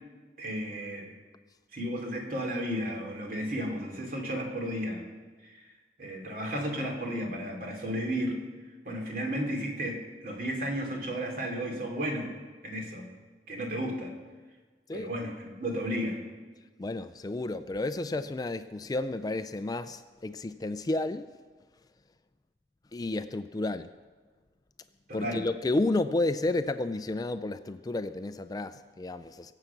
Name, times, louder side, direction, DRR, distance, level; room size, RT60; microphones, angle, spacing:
voice 1, 0.4-1.1 1.7-5.0 5.4-5.6 6.0-8.4 8.8-12.3 12.6-13.1 13.5-14.1 14.9-16.2 25.1-25.4, equal, 55° right, 1 dB, 2.8 m, -33 dB
voice 2, 16.8-21.3 22.9-23.9 25.1-29.5, left 2 dB, 20° left, 11 dB, 0.4 m, -31 dB
23.0 x 7.9 x 5.9 m, 1.4 s
head